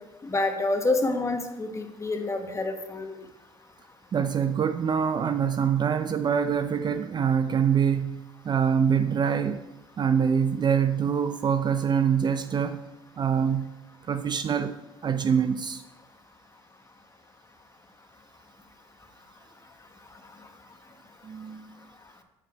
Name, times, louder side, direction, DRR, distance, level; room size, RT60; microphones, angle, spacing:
voice 1, 0.2-3.2, left 2 dB, 25° left, 1.1 m, -28 dB
voice 2, 4.1-9.6 10.0-12.8 13.2-13.7 14.1-14.8 15.0-15.8 21.2-21.7, right 7 dB, 35° right, 0.4 m, -25 dB
7.4 x 3.9 x 4.8 m
supercardioid pair, 75°, 12 cm